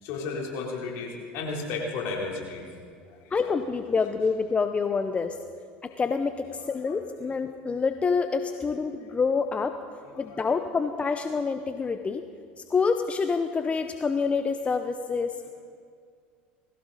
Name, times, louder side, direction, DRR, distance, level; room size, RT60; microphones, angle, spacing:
voice 1, 0.0-2.7 3.1-3.3 4.0-4.1 6.6-7.3 10.1-10.5, left 3 dB, 60° left, -1 dB, 3.8 m, -34 dB
voice 2, 3.3-5.4 5.8-9.8 10.2-12.2 12.6-15.5, left 5 dB, 25° left, 8 dB, 0.8 m, -27 dB
20.0 x 16.0 x 4.1 m, 2.2 s
hypercardioid pair, 75°, 5 cm